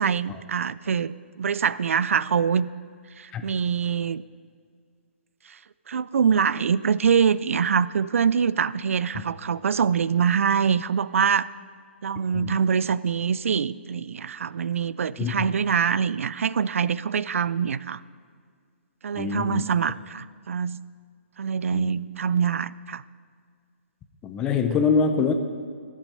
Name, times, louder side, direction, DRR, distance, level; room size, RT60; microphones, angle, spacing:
voice 1, 0.0-2.7 3.2-4.2 5.5-5.6 5.9-11.5 12.0-18.0 19.0-20.8 21.4-23.0, right 7 dB, 90° right, 18 dB, 0.4 m, -24 dB
voice 2, 19.2-19.7 21.7-22.0 24.2-25.3, left 5 dB, 10° left, 7 dB, 0.5 m, -24 dB
14.0 x 7.5 x 5.4 m, 2.1 s
hypercardioid pair, 170°, 7 cm